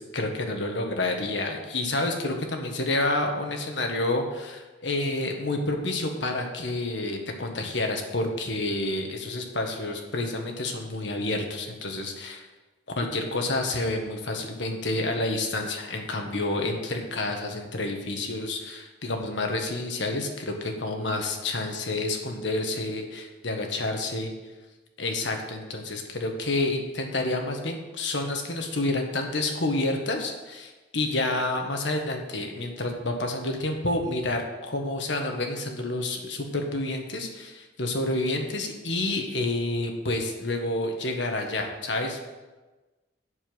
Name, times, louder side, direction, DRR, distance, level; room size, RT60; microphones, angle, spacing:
voice 1, 0.1-12.4 13.0-24.3 25.0-42.4, left 2 dB, 70° left, 3 dB, 1.6 m, -29 dB
8.0 x 7.0 x 7.9 m, 1.2 s
head